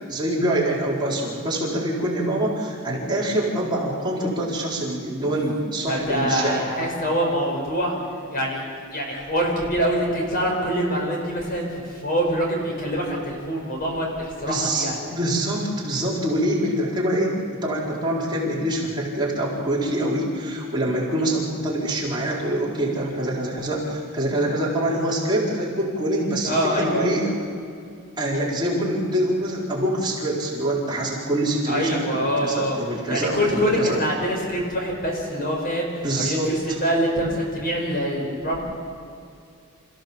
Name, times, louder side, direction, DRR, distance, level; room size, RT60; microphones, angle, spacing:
voice 1, 0.1-6.5 14.4-17.3 17.6-27.3 28.2-34.0 36.0-36.8, right 1 dB, 20° right, -5 dB, 4.4 m, -25 dB
voice 2, 5.9-7.9 8.3-15.0 26.4-27.1 31.7-32.8 33.1-38.6, equal, 45° left, 0 dB, 5.4 m, -25 dB
28.0 x 15.5 x 7.1 m, 2.4 s
head